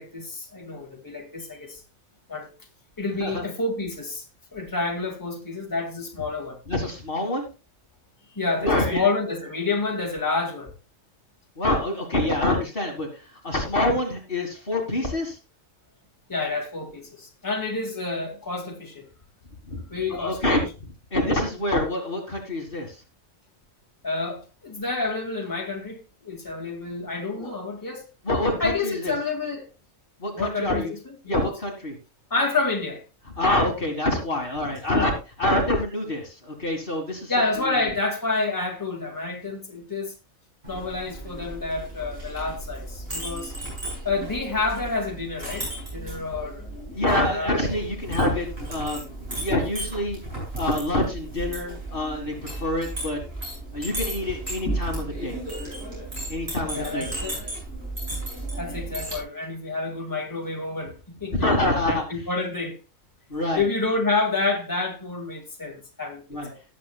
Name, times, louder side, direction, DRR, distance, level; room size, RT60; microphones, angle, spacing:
voice 1, 0.0-1.8 2.3-2.5 3.0-4.2 4.5-6.6 8.3-10.7 16.3-19.1 19.9-20.4 24.0-28.0 28.6-29.7 30.4-31.5 32.3-33.0 34.9-35.1 37.3-40.1 40.7-43.6 44.0-46.7 47.3-47.5 56.7-57.4 58.6-61.5 61.9-62.8 63.6-66.2 66.5-66.6, left 3 dB, 15° left, 2.0 m, -29 dB
voice 2, 6.7-7.5 8.6-9.1 11.6-15.4 19.7-23.0 27.4-27.5 28.2-29.1 30.2-30.9 31.3-32.0 33.4-35.1 35.4-37.3 37.6-37.7 46.9-49.0 49.4-50.2 50.5-53.2 53.7-55.4 56.3-57.1 61.3-62.0 63.3-63.6 66.3-66.5, left 1 dB, 45° left, 2.1 m, -26 dB
Chink clink, 40.6-59.2, right 1 dB, 50° right, 7.7 m, -34 dB
18.5 x 7.5 x 2.3 m
omnidirectional pair, 1.4 m